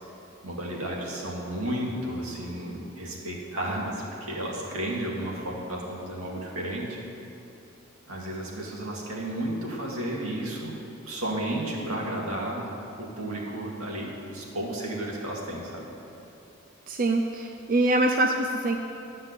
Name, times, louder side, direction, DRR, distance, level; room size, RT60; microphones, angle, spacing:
voice 1, 0.4-7.0 8.1-10.7 11.1-15.9, right 1 dB, 80° right, -3 dB, 2.3 m, -33 dB
voice 2, 16.9-18.8, right 2 dB, 40° right, 3 dB, 0.5 m, -24 dB
12.5 x 5.5 x 8.2 m, 2.8 s
head